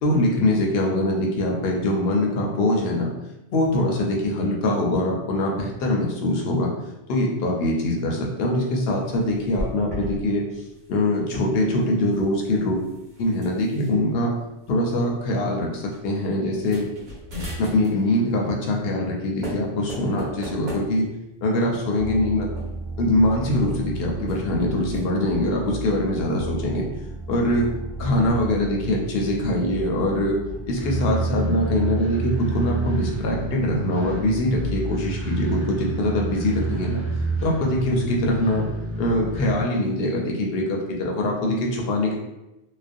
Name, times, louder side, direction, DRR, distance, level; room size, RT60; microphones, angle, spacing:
voice 1, 0.0-3.1 3.5-6.7 7.1-10.4 10.9-12.8 13.2-14.3 14.7-16.9 17.6-21.1 21.4-22.5 23.0-26.9 27.3-27.7 28.0-30.4 30.7-37.0 37.4-38.7 39.0-42.1, left 1 dB, 65° left, -1 dB, 0.7 m, -23 dB
sound 1, 9.0-10.3 10.5-10.9 12.0-13.9 14.7-14.8 15.1-15.3 15.9-16.0 16.5-18.1 19.0-19.2 19.4-21.3 22.1-23.0 23.6-25.0, equal, 45° right, 0.9 m, -37 dB
sound 2, 22.0-39.6, right 3 dB, 15° right, 0.5 m, -30 dB
2.4 x 2.1 x 2.5 m, 0.94 s
omnidirectional pair, 1.2 m